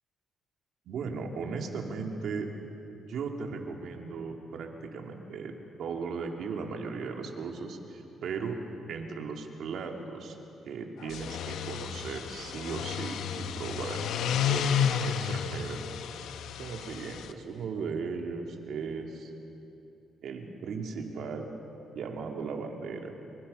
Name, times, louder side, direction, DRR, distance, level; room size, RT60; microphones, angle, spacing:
voice 1, 0.9-2.5 3.1-5.5 5.8-8.6 8.9-10.3 10.7-14.1 14.5-15.8 16.6-19.3 20.2-21.5 21.9-23.1, right 5 dB, 70° right, 2 dB, 2.9 m, -37 dB
sound 1, 11.0-17.3, left 8 dB, 80° left, 1.0 m, -32 dB
26.5 x 23.5 x 5.7 m, 2.8 s
cardioid pair, 90°, 0 cm